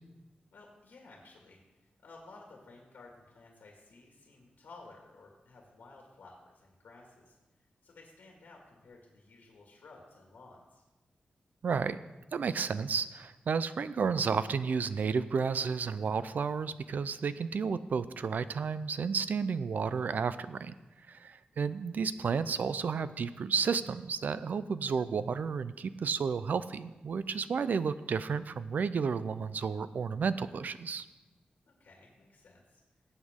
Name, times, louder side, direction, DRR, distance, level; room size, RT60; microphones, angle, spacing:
voice 1, 0.5-1.6 2.0-7.4 7.8-10.8 21.5-21.8 31.7-32.8, left 3 dB, 90° left, 0 dB, 2.0 m, -55 dB
voice 2, 11.6-12.0 12.3-20.7 21.1-31.1, right 5 dB, 65° right, 14 dB, 0.4 m, -32 dB
18.0 x 8.2 x 3.7 m, 1.1 s
wide cardioid pair, 170°, 3 cm